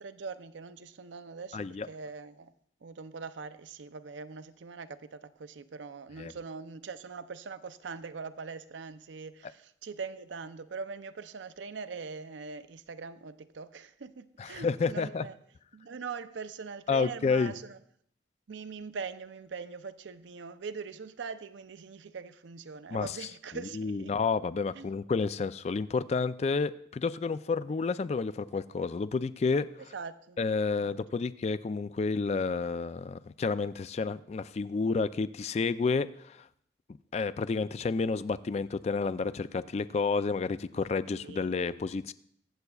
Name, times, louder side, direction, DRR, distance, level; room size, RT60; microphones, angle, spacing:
voice 1, 0.0-2.5 2.8-15.3 15.7-17.8 18.5-24.1 24.7-24.9 29.9-30.4 30.8-31.0 41.1-41.6, right 5 dB, 85° right, 0.5 m, -42 dB
voice 2, 1.5-1.9 6.2-6.3 14.4-15.2 16.9-17.5 22.9-23.1 23.7-29.7 30.4-36.5 37.1-42.1, left 4 dB, 35° left, 0.3 m, -30 dB
23.0 x 7.9 x 2.3 m
head